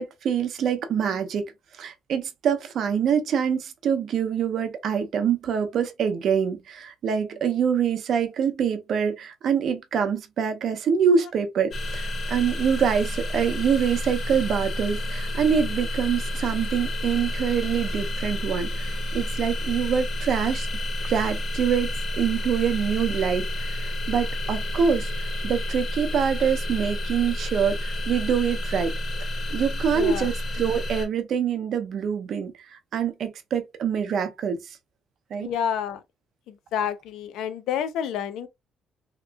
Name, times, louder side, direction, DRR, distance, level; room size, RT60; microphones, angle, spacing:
voice 1, 0.0-1.5 1.8-20.7 21.0-28.9 29.5-34.8 35.3-35.5, right 7 dB, 50° right, 0.6 m, -25 dB
sound 1, 11.7-31.1, left 1 dB, 40° left, 0.8 m, -30 dB
voice 2, 29.9-30.3 35.4-36.0 36.5-38.5, left 8 dB, 85° left, 0.5 m, -29 dB
3.5 x 2.9 x 2.3 m
cardioid pair, 170°, 0 cm